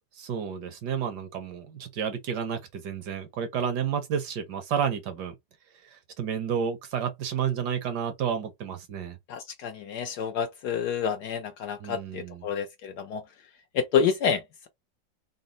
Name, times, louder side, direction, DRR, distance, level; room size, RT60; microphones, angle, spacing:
voice 1, 0.1-5.3 5.8-9.2 11.8-12.5, right 7 dB, 65° right, 1.2 m, -31 dB
voice 2, 9.3-13.2 13.7-14.7, left 7 dB, 70° left, 1.0 m, -28 dB
4.1 x 2.1 x 3.8 m
omnidirectional pair, 2.1 m